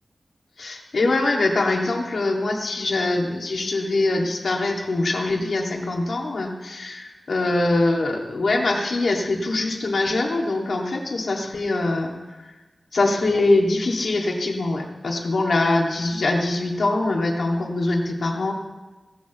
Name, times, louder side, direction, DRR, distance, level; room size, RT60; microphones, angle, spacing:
voice 1, 0.6-12.5 12.9-18.5, left 2 dB, 75° left, 0 dB, 2.0 m, -23 dB
17.0 x 13.5 x 3.1 m, 1.2 s
wide cardioid pair, 120°, 0 cm